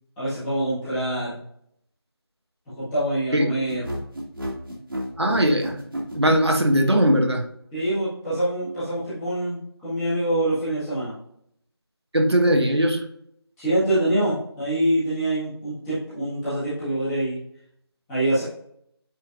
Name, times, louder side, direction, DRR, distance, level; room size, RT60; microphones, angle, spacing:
voice 1, 0.2-1.4 2.8-3.9 7.7-11.1 13.6-17.4 18.1-18.4, right 1 dB, 5° left, -15 dB, 1.7 m, -25 dB
sound 1, 3.7-6.5, equal, 55° right, 1.9 m, -31 dB
voice 2, 5.2-5.8 6.1-7.4 12.1-13.0, equal, 75° right, 2 dB, 1.4 m, -19 dB
8.9 x 4.4 x 2.5 m, 0.70 s
figure-of-eight pair, 170°, 14 cm